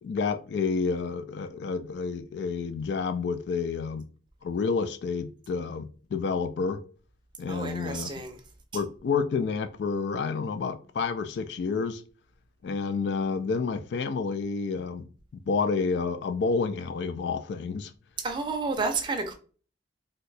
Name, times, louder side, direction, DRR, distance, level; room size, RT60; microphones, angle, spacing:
voice 1, 0.0-4.1 4.4-6.8 7.4-8.2 8.7-12.0 12.6-15.1 15.3-17.9, left 5 dB, 65° left, 0.3 m, -29 dB
voice 2, 7.5-8.4 18.2-19.3, right 3 dB, 25° right, 0.5 m, -30 dB
2.7 x 2.2 x 3.9 m
head